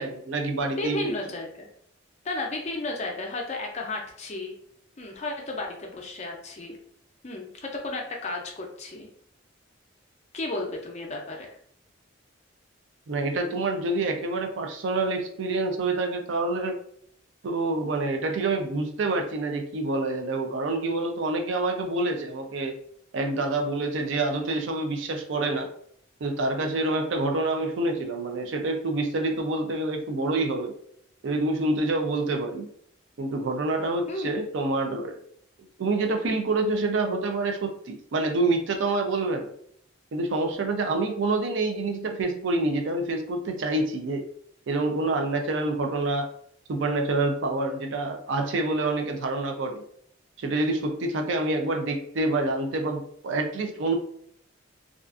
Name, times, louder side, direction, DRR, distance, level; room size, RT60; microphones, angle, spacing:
voice 1, 0.0-1.2 13.1-16.8 17.4-22.8 23.1-25.7 26.2-30.7 31.2-32.7 33.2-35.1 35.8-39.5 40.1-44.3 44.7-46.3 46.7-49.8 50.4-54.0, right 2 dB, 70° right, 4 dB, 0.4 m, -27 dB
voice 2, 0.8-1.7 2.2-4.5 5.0-6.8 7.2-9.1 10.3-11.6 34.1-34.4, left 2 dB, 35° left, 1 dB, 0.5 m, -33 dB
2.4 x 2.3 x 2.4 m, 0.65 s
head